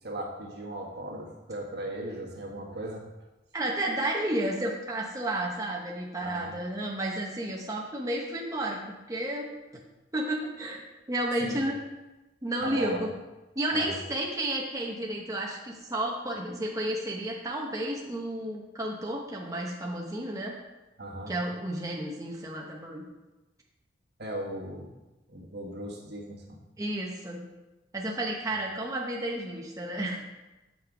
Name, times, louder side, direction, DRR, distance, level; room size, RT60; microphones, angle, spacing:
voice 1, 0.0-3.0 6.2-6.5 11.4-11.6 12.6-13.1 13.7-14.0 21.0-21.3 24.2-24.9 25.3-26.6, right 1 dB, 60° right, -1 dB, 1.5 m, -37 dB
voice 2, 3.5-8.8 9.1-9.5 10.1-10.8 11.1-11.8 12.4-13.1 13.6-20.5 21.3-23.0 26.8-27.4 27.9-30.2, right 1 dB, 20° right, -2 dB, 0.8 m, -32 dB
7.5 x 5.8 x 4.8 m, 1.1 s
head